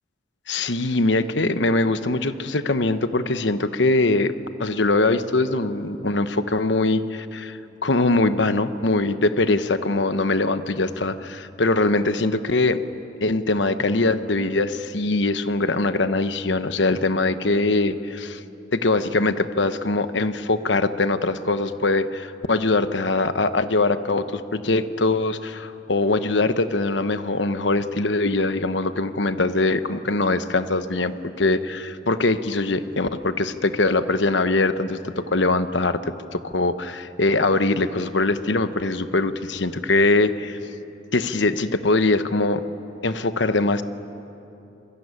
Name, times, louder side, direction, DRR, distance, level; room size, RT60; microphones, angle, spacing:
voice 1, 0.5-4.3 4.6-12.8 13.2-18.4 18.7-40.6 41.1-42.6 43.0-43.8, left 2 dB, 70° left, 10 dB, 1.1 m, -22 dB
26.5 x 22.5 x 9.8 m, 2.9 s
head